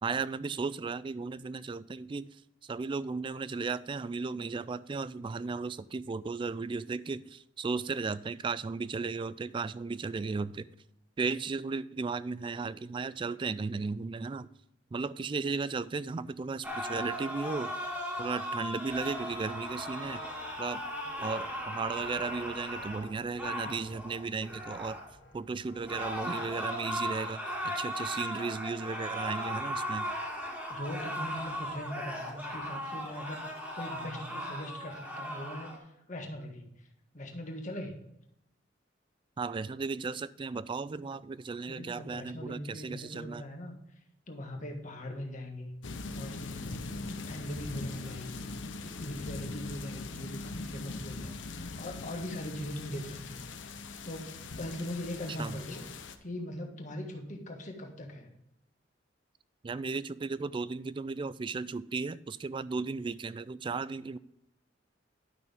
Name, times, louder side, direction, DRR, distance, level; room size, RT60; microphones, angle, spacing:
voice 1, 0.0-2.3 2.6-10.7 11.2-14.5 14.9-17.7 18.2-20.2 20.6-20.8 21.2-25.0 25.3-30.1 39.4-43.4 55.4-55.6 59.6-64.2, right 4 dB, 25° right, 0.3 m, -35 dB
sound 1, 16.6-25.1 25.8-35.8, equal, 5° right, 1.9 m, -37 dB
sound 2, 19.1-26.5, left 3 dB, 65° left, 1.1 m, -55 dB
voice 2, 30.7-36.7 37.1-38.0 41.7-43.7 44.3-45.7 46.1-46.8 47.3-48.5 48.8-53.4 54.0-55.9 56.2-58.3, left 1 dB, 40° left, 1.5 m, -41 dB
sound 3, 45.8-56.2, left 3 dB, 85° left, 0.8 m, -41 dB
11.0 x 6.1 x 3.5 m
head